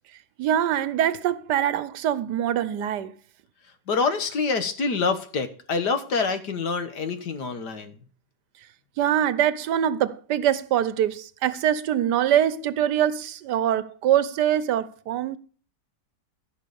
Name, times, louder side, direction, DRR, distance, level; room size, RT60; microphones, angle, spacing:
voice 1, 0.4-3.1 9.0-15.4, right 10 dB, 90° right, 1.4 m, -23 dB
voice 2, 3.9-8.0, left 4 dB, 75° left, 2.0 m, -26 dB
14.5 x 6.2 x 6.9 m
omnidirectional pair, 1.8 m